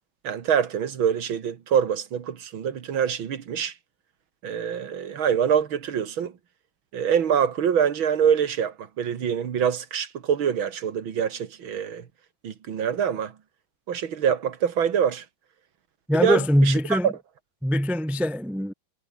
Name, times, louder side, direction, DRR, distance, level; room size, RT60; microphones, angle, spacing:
voice 1, 0.2-3.7 4.4-6.3 6.9-12.0 12.4-13.3 13.9-15.2 16.1-17.1, right 8 dB, 85° right, 2.5 m, -25 dB
voice 2, 16.1-17.1 17.6-18.7, equal, ahead, 0.8 m, -22 dB
omnidirectional pair, 2.1 m